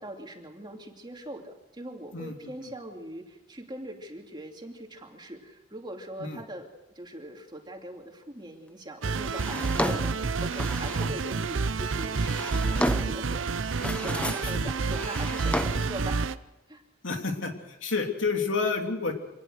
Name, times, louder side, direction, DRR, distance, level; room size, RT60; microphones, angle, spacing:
voice 1, 0.0-6.7 6.9-16.3 16.7-16.8, right 1 dB, 25° right, 2 dB, 2.7 m, -41 dB
voice 2, 2.1-2.5 6.2-6.4 11.0-11.1 14.4-14.7 17.0-19.1, left 4 dB, 75° left, 3 dB, 3.0 m, -30 dB
sound 1, 9.0-16.4, right 4 dB, 75° right, 0.7 m, -29 dB
Drawer open or close, 9.3-11.2 12.0-13.3 13.6-14.6 14.9-16.0, left 1 dB, 5° left, 0.8 m, -33 dB
25.5 x 19.0 x 6.6 m, 0.99 s
head